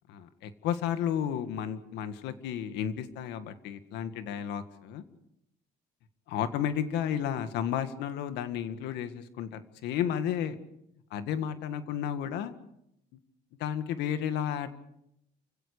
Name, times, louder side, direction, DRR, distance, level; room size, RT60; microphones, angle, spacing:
voice 1, 0.1-5.0 6.3-10.6 11.1-12.5 13.6-14.7, left 9 dB, 90° left, 10 dB, 1.9 m, -32 dB
29.5 x 16.5 x 6.7 m, 0.79 s
cardioid pair, 110°, 17 cm